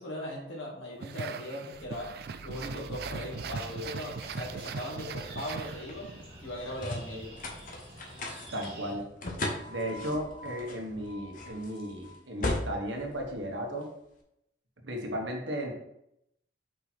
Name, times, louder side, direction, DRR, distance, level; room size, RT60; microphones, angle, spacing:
voice 1, 0.0-2.1 2.4-6.1 6.4-7.5, left 1 dB, 85° left, -3 dB, 2.2 m, -39 dB
sound 1, 1.0-6.2, right 5 dB, 55° right, 0.3 m, -40 dB
sound 2, 1.7-14.1, left 1 dB, 45° left, 1.0 m, -40 dB
sound 3, 3.3-8.9, right 1 dB, 30° right, 1.7 m, -49 dB
voice 2, 8.5-9.1 9.7-13.9 14.8-15.7, equal, 80° right, 1 dB, 1.4 m, -35 dB
5.3 x 4.5 x 4.2 m, 0.80 s
head